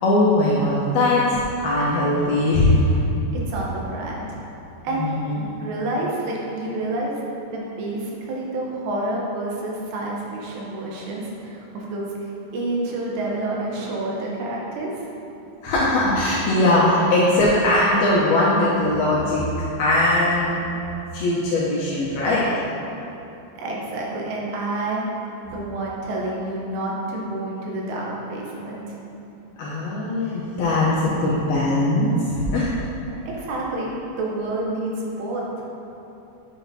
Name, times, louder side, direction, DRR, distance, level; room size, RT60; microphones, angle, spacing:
voice 1, 0.0-3.0 4.9-5.4 15.6-19.4 19.8-20.6 21.1-22.5 29.6-32.7, left 1 dB, 75° left, -7 dB, 2.3 m, -20 dB
voice 2, 3.3-4.4 4.8-5.1 5.6-7.2 7.5-12.2 12.5-14.9 23.6-25.1 25.4-29.0 33.3-33.9 34.2-35.6, right 2 dB, 75° right, -3 dB, 3.0 m, -28 dB
9.9 x 7.7 x 2.8 m, 2.9 s
omnidirectional pair, 5.2 m